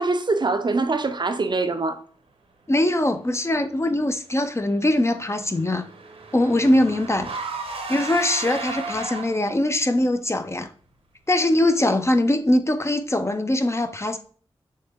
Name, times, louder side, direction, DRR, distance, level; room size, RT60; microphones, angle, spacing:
voice 1, 0.0-2.0, right 3 dB, 50° right, 0.5 m, -23 dB
voice 2, 2.7-5.8 6.3-7.3 7.9-10.7 11.3-14.2, left 1 dB, 25° left, 0.5 m, -22 dB
Car / Engine, 4.6-9.6, right 3 dB, 75° right, 0.9 m, -35 dB
6.3 x 2.1 x 3.6 m
cardioid pair, 40°, 10 cm